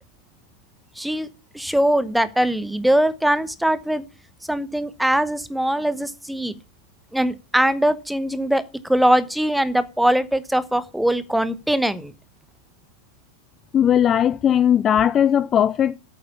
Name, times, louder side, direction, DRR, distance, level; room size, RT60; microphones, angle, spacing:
voice 1, 1.0-1.3 1.5-4.0 4.5-6.6 7.1-12.1, right 1 dB, ahead, 1.0 m, -21 dB
voice 2, 13.7-15.9, left 9 dB, 25° left, 0.5 m, -18 dB
8.7 x 7.9 x 6.9 m
figure-of-eight pair, 90°, 0 cm